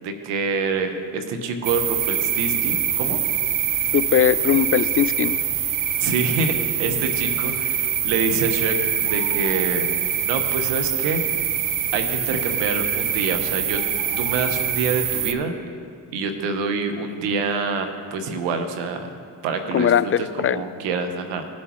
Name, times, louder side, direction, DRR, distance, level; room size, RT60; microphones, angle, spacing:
voice 1, 0.0-3.2 6.0-9.9 10.3-11.3 11.9-13.9 14.2-15.6 16.1-19.1 19.4-21.5, right 4 dB, 85° right, 6 dB, 1.0 m, -26 dB
sound 1, 1.6-15.3, right 9 dB, 50° right, 0.8 m, -24 dB
voice 2, 3.9-5.4 19.7-20.6, left 10 dB, 30° left, 15 dB, 0.5 m, -20 dB
17.5 x 7.3 x 3.1 m, 2.3 s
hypercardioid pair, 45°, 42 cm